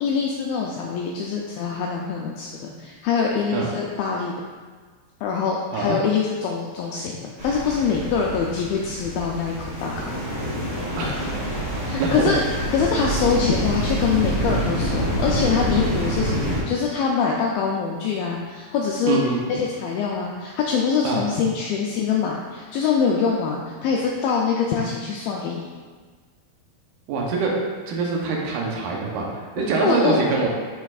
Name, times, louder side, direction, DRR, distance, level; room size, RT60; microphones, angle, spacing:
voice 1, 0.0-4.3 5.2-10.1 11.8-12.4 12.7-19.2 19.5-25.7 29.8-30.2, left 6 dB, 90° left, -1 dB, 2.1 m, -24 dB
sound 1, 7.4-16.6, equal, 60° right, 0.6 m, -26 dB
voice 2, 12.0-12.3 19.1-19.4 21.0-21.2 27.1-27.5 27.9-30.5, right 4 dB, 85° right, -2 dB, 1.8 m, -24 dB
10.5 x 4.4 x 2.4 m, 1.5 s
omnidirectional pair, 4.8 m